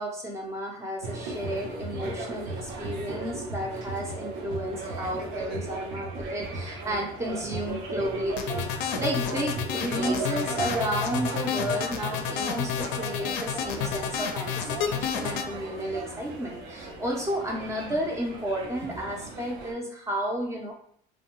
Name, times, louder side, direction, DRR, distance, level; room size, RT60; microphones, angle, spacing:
voice 1, 0.0-8.7 9.0-20.7, right 1 dB, 15° right, 0 dB, 0.5 m, -32 dB
sound 1, 1.0-19.7, right 2 dB, 75° right, 0.7 m, -36 dB
sound 2, 8.4-15.5, left 8 dB, 70° left, 0.4 m, -30 dB
2.6 x 2.1 x 3.0 m, 0.64 s
cardioid pair, 140°, 19 cm